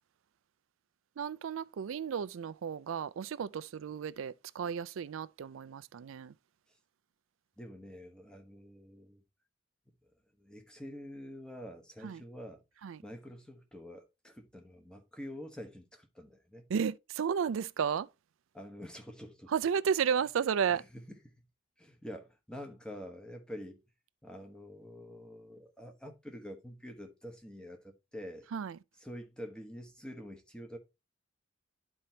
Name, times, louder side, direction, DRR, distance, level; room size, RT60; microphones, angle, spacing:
voice 1, 1.2-6.3 12.0-12.2 12.8-13.0 16.7-18.1 19.5-20.8 28.5-28.8, right 7 dB, 80° right, 0.4 m, -33 dB
voice 2, 7.6-9.2 10.0-10.1 10.4-12.6 13.0-16.7 18.5-19.5 20.7-21.4 21.8-23.8 24.2-28.5 29.0-30.8, equal, 5° left, 1.0 m, -47 dB
11.5 x 4.4 x 2.8 m
head